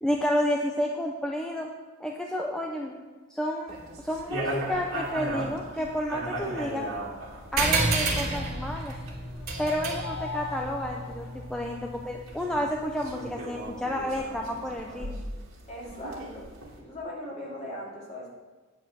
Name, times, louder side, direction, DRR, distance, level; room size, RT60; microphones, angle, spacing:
voice 1, 0.0-1.7 2.0-2.9 3.3-6.8 7.5-8.9 9.6-15.2, equal, 5° left, 0 dB, 0.6 m, -30 dB
sound 1, 3.7-16.8, right 1 dB, 65° right, 2.3 m, -38 dB
sound 2, 7.6-12.5, right 3 dB, 50° right, 1.9 m, -30 dB
sound 3, 9.2-12.1, left 5 dB, 70° left, 0.7 m, -41 dB
voice 2, 15.7-16.5 16.8-18.3, left 1 dB, 30° left, -5 dB, 3.0 m, -39 dB
9.3 x 4.7 x 7.5 m, 1.3 s
head